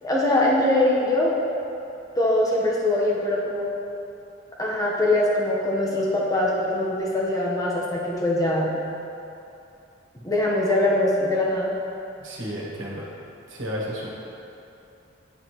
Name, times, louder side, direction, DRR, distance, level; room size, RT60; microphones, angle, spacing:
voice 1, 0.0-1.3 2.2-3.7 4.6-8.7 10.2-11.7, left 1 dB, 20° left, -4 dB, 1.0 m, -22 dB
voice 2, 12.2-13.1 13.5-14.1, equal, 85° right, -5 dB, 1.4 m, -32 dB
9.1 x 4.9 x 3.0 m, 2.8 s
head